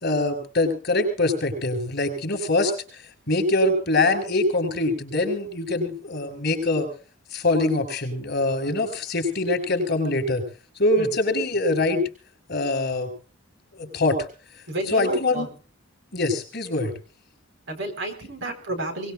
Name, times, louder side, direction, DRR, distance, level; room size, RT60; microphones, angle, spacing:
voice 1, 0.0-6.9 7.3-10.4 10.8-12.0 12.5-13.1 13.7-14.2 14.9-15.5 16.1-16.9, left 2 dB, 50° left, 7 dB, 5.8 m, -23 dB
voice 2, 14.7-15.5 17.7-19.1, right 1 dB, 65° right, 6 dB, 4.3 m, -31 dB
23.0 x 20.0 x 2.5 m, 0.38 s
head